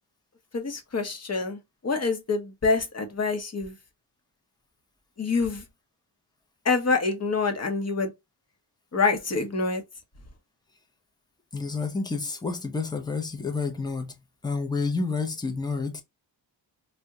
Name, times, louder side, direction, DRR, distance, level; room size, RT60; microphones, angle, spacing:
voice 1, 0.5-3.7 5.2-5.6 6.6-8.1 8.9-9.8, left 4 dB, 35° left, 0.8 m, -26 dB
voice 2, 11.5-14.1 14.4-16.0, left 4 dB, 10° left, 0.5 m, -29 dB
2.7 x 2.2 x 3.4 m
wide cardioid pair, 115°, 45 cm